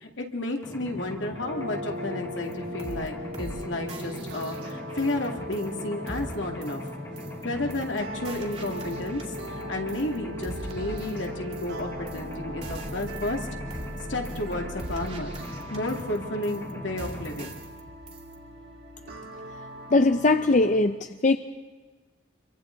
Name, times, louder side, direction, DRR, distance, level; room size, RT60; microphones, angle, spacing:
voice 1, 0.0-6.8 7.4-9.2 9.5-13.5 14.1-15.4 15.7-17.6, left 1 dB, 75° left, 2 dB, 2.5 m, -32 dB
Mechanisms, 0.6-17.5, left 1 dB, 15° left, 1.4 m, -41 dB
sound 1, 1.4-20.8, equal, 75° right, 4.4 m, -39 dB
sound 2, 2.5-2.6 2.8-3.1 3.3-3.6 3.9-5.3 5.5-5.8 6.1-6.4 6.6-6.9 7.2-7.4 7.7-8.0 8.3-9.6 9.9-10.2 10.4-11.8 12.1-12.3 12.6-13.4 13.7-14.0 14.3-14.5 14.8-16.2 16.4-16.7 17.0-17.8 18.1-18.4, right 1 dB, 30° right, 2.2 m, -42 dB
voice 2, 19.9-21.4, left 2 dB, 40° left, 9 dB, 0.5 m, -21 dB
27.5 x 23.5 x 4.0 m, 1.4 s
head